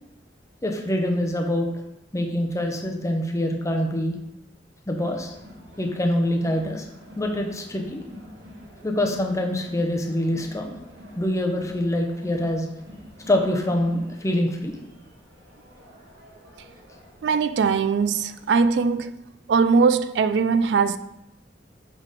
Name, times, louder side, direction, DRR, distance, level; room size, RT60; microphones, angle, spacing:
voice 1, 0.6-1.7 2.1-4.2 4.9-5.3 5.8-6.9 7.2-8.0 8.8-10.7 11.2-12.7 13.3-14.8, left 1 dB, 15° left, 0.8 m, -25 dB
Crowd, 4.9-18.5, left 1 dB, 85° right, 1.8 m, -47 dB
voice 2, 17.2-19.1 19.5-21.0, right 5 dB, 70° right, 0.3 m, -20 dB
8.7 x 3.7 x 4.1 m
head